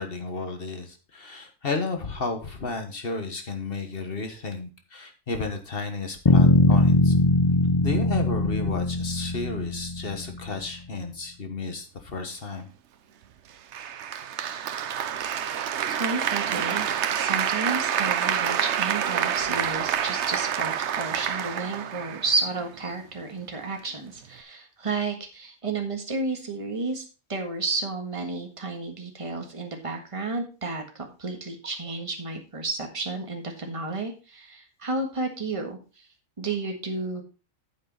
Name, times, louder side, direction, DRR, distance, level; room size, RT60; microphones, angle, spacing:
voice 1, 0.0-7.1 7.8-12.7, left 3 dB, 50° left, 6 dB, 1.6 m, -32 dB
sound 1, 6.3-10.3, left 3 dB, 30° left, 0.5 m, -21 dB
Applause, 13.7-22.7, right 9 dB, 65° right, 1.0 m, -27 dB
voice 2, 15.9-27.0 27.3-35.8 36.4-37.2, right 3 dB, 25° right, 3 dB, 1.6 m, -31 dB
9.1 x 7.8 x 3.9 m, 0.34 s
omnidirectional pair, 1.3 m